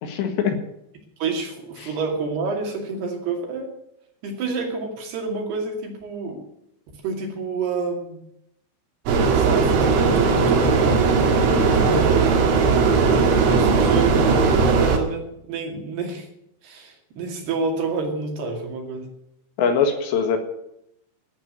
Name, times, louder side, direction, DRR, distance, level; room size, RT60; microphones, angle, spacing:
voice 1, 0.0-0.6 1.8-1.9 11.5-11.9 19.6-20.4, left 6 dB, 70° left, 6 dB, 3.7 m, -23 dB
voice 2, 1.2-3.7 4.2-6.5 7.0-8.2 9.3-11.0 11.7-12.3 13.1-14.2 14.6-16.3 16.6-19.1, right 4 dB, 60° right, 2 dB, 4.2 m, -28 dB
sound 1, 9.1-15.0, right 4 dB, 85° right, 4.6 m, -18 dB
14.0 x 8.6 x 9.1 m, 0.79 s
omnidirectional pair, 5.5 m